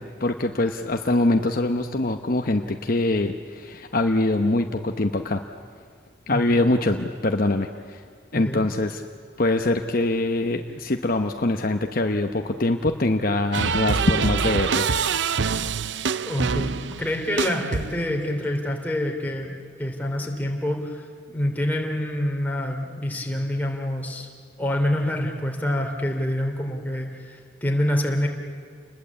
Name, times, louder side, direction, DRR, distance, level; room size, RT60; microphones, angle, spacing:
voice 1, 0.0-5.4 6.3-8.0 8.3-9.0 9.4-14.9, left 2 dB, 45° left, 5 dB, 0.9 m, -23 dB
voice 2, 8.3-8.6 16.2-19.5 19.8-24.3 24.6-28.3, left 1 dB, 10° left, 1 dB, 3.0 m, -26 dB
sound 1, 13.5-18.2, right 5 dB, 60° right, 0.6 m, -25 dB
29.5 x 21.0 x 8.4 m, 2.1 s
head